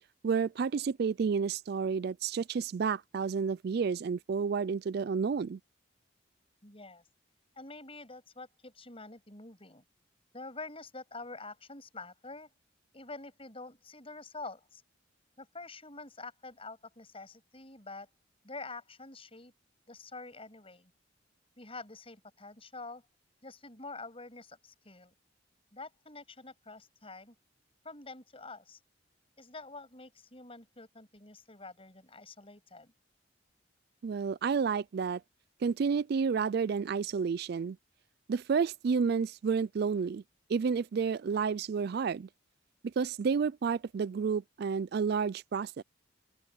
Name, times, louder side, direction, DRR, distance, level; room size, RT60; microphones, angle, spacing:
voice 1, 0.2-5.6 34.0-35.2 35.6-37.8 38.3-40.2 40.5-42.3 42.8-45.8, right 5 dB, 55° right, 0.3 m, -30 dB
voice 2, 6.6-7.0 7.6-9.8 10.3-12.5 12.9-14.8 15.4-18.1 18.4-19.5 19.9-20.9 21.6-23.0 23.4-25.1 25.7-27.4 27.8-28.8 29.4-32.9, left 3 dB, 30° left, 7.2 m, -47 dB
open air
head